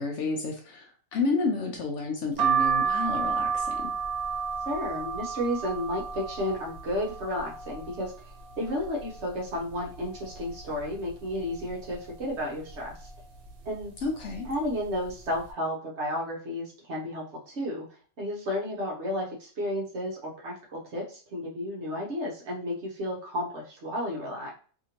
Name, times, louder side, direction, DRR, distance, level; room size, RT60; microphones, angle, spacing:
voice 1, 0.0-3.9 14.0-14.5, left 3 dB, 65° left, 2 dB, 0.8 m, -30 dB
sound 1, 2.4-8.1 8.5-9.3 9.7-9.8 9.9-11.1 11.6-11.9 12.7-13.0 13.8-14.0 14.3-14.5, right 6 dB, 80° right, 1.1 m, -31 dB
voice 2, 4.7-8.2 8.6-13.1 13.6-13.9 14.5-17.9 18.2-24.5, left 1 dB, 55° right, -2 dB, 1.0 m, -32 dB
2.8 x 2.6 x 2.8 m, 0.41 s
omnidirectional pair, 1.5 m